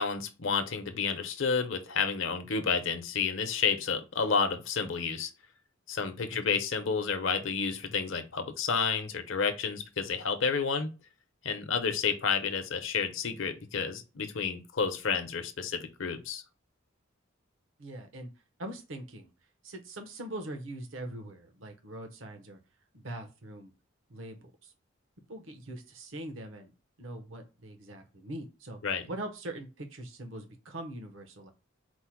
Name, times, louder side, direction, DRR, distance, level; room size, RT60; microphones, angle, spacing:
voice 1, 0.0-5.3 5.9-10.9 11.4-16.4 28.8-29.1, left 5 dB, 70° left, 8 dB, 0.7 m, -30 dB
voice 2, 17.8-18.3 18.6-19.3 19.6-22.6 22.9-23.7 24.1-24.7 25.3-26.7 27.0-28.8 29.1-31.5, right 1 dB, 70° right, 5 dB, 0.8 m, -42 dB
4.4 x 2.1 x 4.4 m, 0.30 s
head